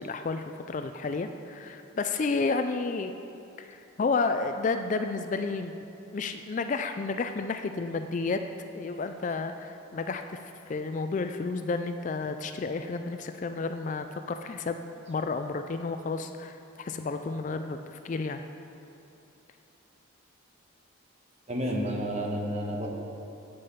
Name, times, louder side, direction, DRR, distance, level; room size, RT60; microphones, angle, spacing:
voice 1, 0.0-3.1 3.6-5.7 6.1-8.4 8.7-10.4 10.7-18.4, left 4 dB, 35° left, 8 dB, 0.3 m, -31 dB
voice 2, 21.5-22.9, equal, 30° right, -1 dB, 1.2 m, -30 dB
8.6 x 8.5 x 5.6 m, 2.8 s
head